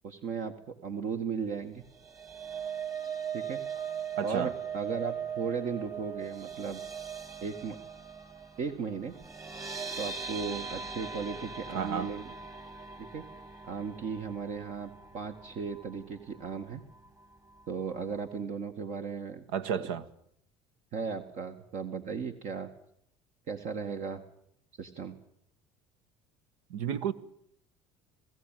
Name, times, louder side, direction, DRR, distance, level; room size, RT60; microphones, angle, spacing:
voice 1, 0.0-1.8 3.3-3.6 4.2-6.8 7.4-7.8 8.6-9.1 10.0-12.3 13.0-13.2 13.7-16.8 17.7-19.4 19.8-19.9 20.9-22.7 23.5-24.2 24.8-25.2, right 5 dB, 55° right, 1.7 m, -36 dB
sound 1, 1.8-16.1 16.4-16.7 17.0-17.1, right 7 dB, 20° right, 2.0 m, -40 dB
voice 2, 4.2-4.5 11.7-12.1 19.5-20.1 26.7-27.1, right 8 dB, 75° right, 1.3 m, -31 dB
21.0 x 15.5 x 9.1 m
hypercardioid pair, 75°, 15 cm